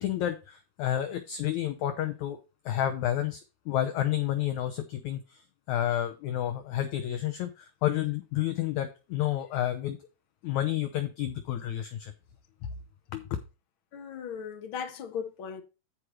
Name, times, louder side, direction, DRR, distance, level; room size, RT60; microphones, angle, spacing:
voice 1, 0.0-2.4 2.6-5.4 5.7-10.0 10.4-12.1 12.6-12.7 13.1-13.2, left 12 dB, 80° left, 1.7 m, -30 dB
voice 2, 13.9-15.6, left 7 dB, 50° left, 1.6 m, -37 dB
14.5 x 4.9 x 3.1 m
omnidirectional pair, 4.4 m